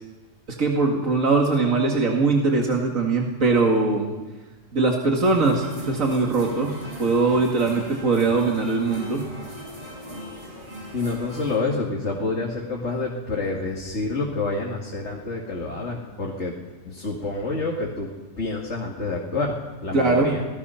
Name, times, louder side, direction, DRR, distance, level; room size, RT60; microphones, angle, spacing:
voice 1, 0.6-4.1 4.7-9.2 19.9-20.3, right 3 dB, 90° right, 0 dB, 2.5 m, -21 dB
sound 1, 5.2-11.6, equal, 40° right, 6.1 m, -39 dB
voice 2, 10.9-16.5 16.9-18.1 18.4-19.6 19.8-20.4, left 3 dB, 60° left, -1 dB, 2.6 m, -28 dB
27.0 x 19.5 x 5.8 m, 1.2 s
omnidirectional pair, 1.3 m